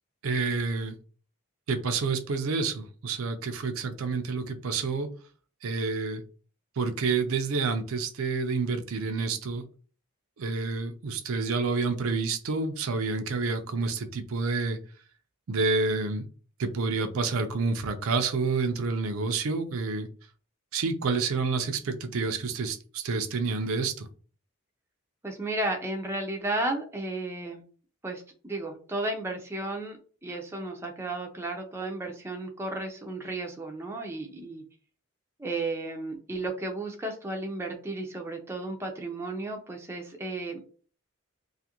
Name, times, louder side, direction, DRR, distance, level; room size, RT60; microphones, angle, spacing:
voice 1, 0.2-0.9 1.7-5.1 5.6-6.2 6.8-9.6 10.4-14.8 15.5-16.2 16.6-20.1 20.7-24.1, right 4 dB, 80° right, 0.5 m, -28 dB
voice 2, 25.2-27.6 28.0-30.0 30.2-34.6 35.4-40.7, right 2 dB, 10° right, 0.4 m, -33 dB
2.5 x 2.4 x 2.8 m
head